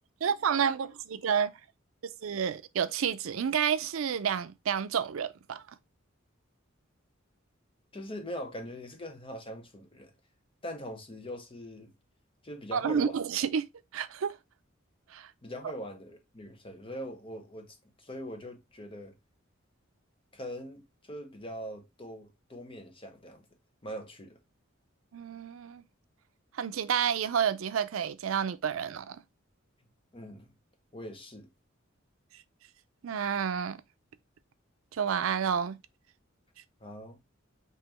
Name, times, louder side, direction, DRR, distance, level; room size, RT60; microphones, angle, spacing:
voice 1, 0.2-1.5 2.2-5.6 12.7-13.7 13.9-14.4 15.1-15.3 25.1-25.8 26.5-29.2 33.0-33.8 34.9-35.8, right 7 dB, 80° right, 0.4 m, -30 dB
voice 2, 7.9-10.1 10.6-11.9 12.4-13.2 15.4-19.1 20.3-23.5 23.8-24.4 30.1-30.5 30.9-31.5 36.8-37.2, equal, 25° left, 1.1 m, -42 dB
5.5 x 2.9 x 3.1 m
head